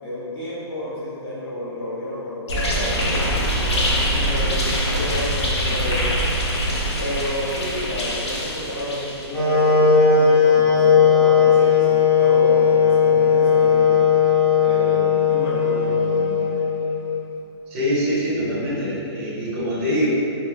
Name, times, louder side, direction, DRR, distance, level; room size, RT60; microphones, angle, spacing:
voice 1, 0.0-6.1 7.0-14.0 14.6-16.5, left 1 dB, 55° left, -10 dB, 1.3 m, -30 dB
sound 1, 2.5-9.5, equal, 75° left, 0.6 m, -24 dB
Wind instrument woodwind instrument, 9.3-17.3, left 6 dB, 10° left, 0.9 m, -17 dB
voice 2, 17.7-20.1, equal, 25° right, -8 dB, 0.6 m, -24 dB
3.4 x 2.0 x 2.8 m, 2.7 s
hypercardioid pair, 170°, 14 cm